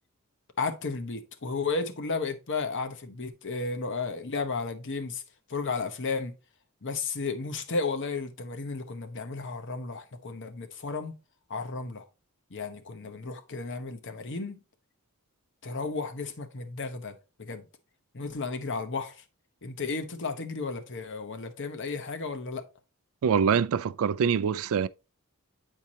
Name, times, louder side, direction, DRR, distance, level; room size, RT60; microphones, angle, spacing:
voice 1, 0.6-5.2 5.5-6.3 6.8-11.1 11.5-12.1 12.5-14.6 15.6-17.7 18.1-19.2 19.6-22.7, left 4 dB, 55° left, 0.9 m, -33 dB
voice 2, 23.2-24.9, right 7 dB, 65° right, 0.3 m, -24 dB
8.6 x 4.5 x 2.8 m
head